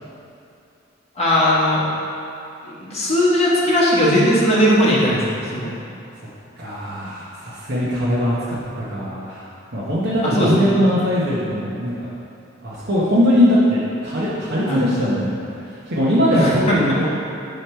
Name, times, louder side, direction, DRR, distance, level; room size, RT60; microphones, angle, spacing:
voice 1, 1.2-1.8 2.6-5.7 10.2-10.8 14.7-14.8 16.3-16.8, equal, 30° left, -7 dB, 1.4 m, -18 dB
voice 2, 6.6-9.4 9.7-11.9 12.6-15.4 15.6-17.2, equal, 55° right, -9 dB, 1.0 m, -20 dB
6.1 x 4.9 x 4.4 m, 2.7 s
head